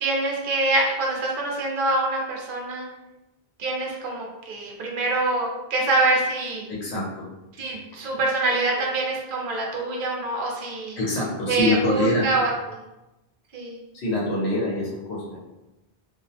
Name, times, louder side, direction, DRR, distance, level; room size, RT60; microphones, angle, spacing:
voice 1, 0.0-2.9 3.6-6.7 7.6-11.0 11.5-12.5 13.5-13.8, right 2 dB, 60° right, -1 dB, 0.7 m, -25 dB
voice 2, 6.7-7.3 7.7-7.8 8.7-8.9 11.0-12.3 13.9-15.4, left 1 dB, 85° left, -4 dB, 1.0 m, -25 dB
2.4 x 2.0 x 2.7 m, 1.0 s
omnidirectional pair, 1.1 m